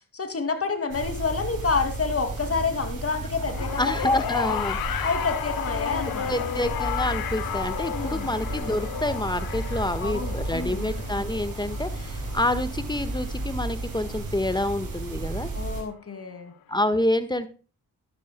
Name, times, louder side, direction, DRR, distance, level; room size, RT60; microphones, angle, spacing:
voice 1, 0.1-4.5 5.0-6.3 7.9-8.3 10.0-10.9 15.5-16.5, left 4 dB, 40° left, 7 dB, 2.7 m, -29 dB
sound 1, 0.9-15.8, right 2 dB, 75° right, 4.7 m, -33 dB
sound 2, 3.5-13.9 15.0-15.1, left 10 dB, 90° left, 1.1 m, -33 dB
voice 2, 3.8-5.0 6.2-15.5 16.7-17.5, left 1 dB, 10° left, 11 dB, 1.5 m, -27 dB
13.0 x 11.5 x 2.3 m, 0.36 s
cardioid pair, 55°, 34 cm